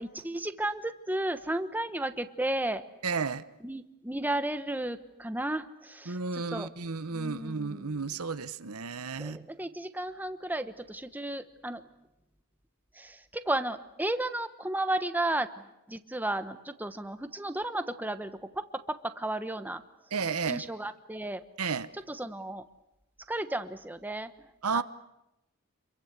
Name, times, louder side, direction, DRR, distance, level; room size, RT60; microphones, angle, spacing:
voice 1, 0.0-2.8 3.6-6.7 7.1-7.9 9.2-11.9 12.9-19.8 20.5-21.4 22.1-22.6 23.3-24.5 24.7-24.8, right 1 dB, 10° right, 1.1 m, -34 dB
voice 2, 3.0-3.4 6.1-9.5 20.1-20.6 21.6-21.9 24.6-24.8, right 5 dB, 80° right, 1.0 m, -32 dB
27.5 x 23.0 x 8.2 m
head